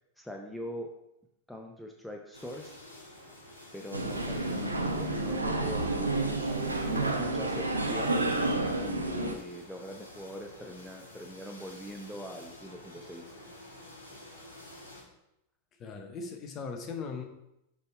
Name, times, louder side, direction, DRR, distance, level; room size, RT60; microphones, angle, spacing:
voice 1, 0.2-0.9 1.5-2.8 3.7-8.1 8.8-13.3, equal, ahead, 1 dB, 0.6 m, -42 dB
sound 1, 2.3-15.0, left 1 dB, 80° left, 1.3 m, -50 dB
sound 2, 3.9-9.3, right 2 dB, 80° right, 0.6 m, -30 dB
voice 2, 15.8-17.2, left 5 dB, 30° left, 4 dB, 0.9 m, -38 dB
6.7 x 3.5 x 4.4 m, 0.84 s
figure-of-eight pair, 90°, 0 cm